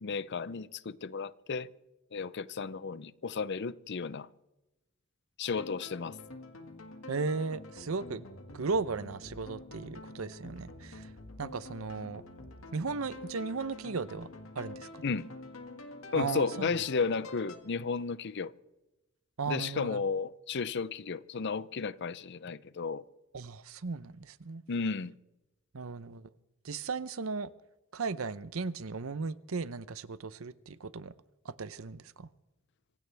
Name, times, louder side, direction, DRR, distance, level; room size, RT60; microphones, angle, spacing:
voice 1, 0.0-1.7 2.1-4.3 5.4-6.2 15.0-15.3 16.1-18.5 19.5-23.0 24.7-25.1, left 5 dB, 55° left, 0.6 m, -33 dB
sound 1, 5.5-17.6, left 2 dB, 70° left, 1.9 m, -47 dB
voice 2, 7.1-8.2 8.5-11.1 11.4-12.2 12.7-14.3 14.5-15.0 16.1-16.7 19.4-20.0 23.3-24.6 25.7-26.3 26.6-27.5 27.9-31.1 31.4-32.3, right 4 dB, 75° right, 0.7 m, -36 dB
26.0 x 16.0 x 3.4 m
head